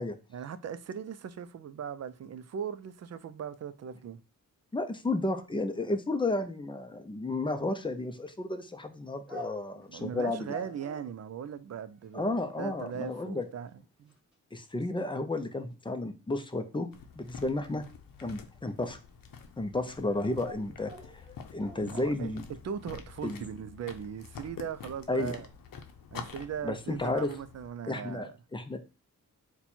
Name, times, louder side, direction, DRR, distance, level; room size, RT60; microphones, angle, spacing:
voice 1, 0.3-4.2 9.9-13.7 14.0-14.1 21.8-22.4 22.6-25.5 26.1-28.3, right 8 dB, 50° right, 0.4 m, -39 dB
voice 2, 4.7-10.5 12.1-13.4 14.5-16.9 17.2-17.8 18.2-19.0 19.6-21.2 21.5-22.4 23.2-23.4 25.1-25.4 26.6-27.3 27.9-28.8, left 2 dB, 15° left, 0.5 m, -32 dB
sound 1, 7.8-7.9 9.3-9.8 10.5-11.1 12.1-12.2 12.6-12.7 12.9-13.4 14.1-14.3 17.9-18.0 18.4-18.5 19.8-19.9 20.1-22.2, left 1 dB, 5° right, 1.6 m, -47 dB
sound 2, 16.9-27.7, left 6 dB, 75° left, 0.7 m, -48 dB
4.2 x 2.3 x 4.2 m
wide cardioid pair, 90°, 34 cm